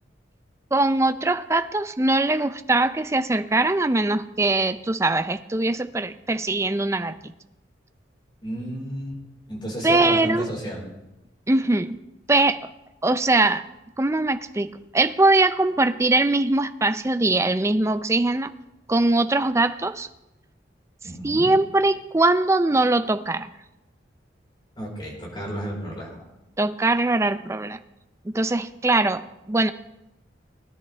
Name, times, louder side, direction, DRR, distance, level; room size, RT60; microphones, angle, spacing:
voice 1, 0.7-7.3 9.8-10.5 11.5-12.0 12.3-12.6 13.0-13.6 14.0-18.5 18.9-20.1 21.2-23.5 26.6-27.8 28.2-29.7, right 2 dB, 15° right, 11 dB, 0.4 m, -21 dB
voice 2, 8.4-9.2 9.5-10.9 21.0-21.5 24.8-26.3, equal, 25° left, -3 dB, 4.2 m, -32 dB
19.5 x 11.0 x 3.3 m, 0.96 s
head